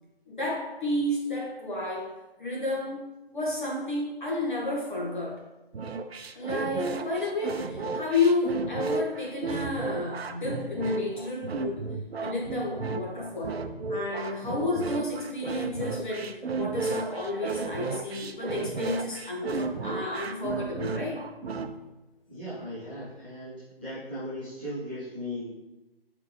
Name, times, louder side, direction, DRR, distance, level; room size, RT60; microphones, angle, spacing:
voice 1, 0.2-3.0 3.3-5.4 6.3-11.9 12.2-13.6 13.9-21.3, left 2 dB, 50° left, -4 dB, 1.5 m, -31 dB
sound 1, 5.7-21.7, right 4 dB, 85° right, 0.5 m, -33 dB
voice 2, 22.3-25.5, equal, 10° left, -15 dB, 0.6 m, -37 dB
4.8 x 3.3 x 3.1 m, 1.0 s
figure-of-eight pair, 150°, 30 cm